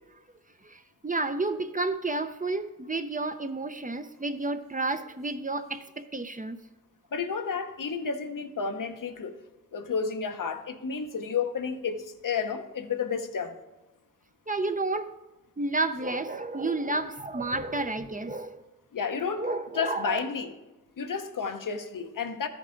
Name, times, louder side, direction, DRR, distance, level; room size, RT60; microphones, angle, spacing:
voice 1, 0.6-6.6 14.5-15.2 15.6-18.6 19.4-20.2, right 2 dB, 25° right, 0.6 m, -31 dB
voice 2, 7.1-9.4 9.7-13.6 18.9-19.5 19.7-20.5 21.0-22.5, left 6 dB, 75° left, 0.8 m, -31 dB
13.0 x 5.4 x 3.8 m
wide cardioid pair, 60°, 33 cm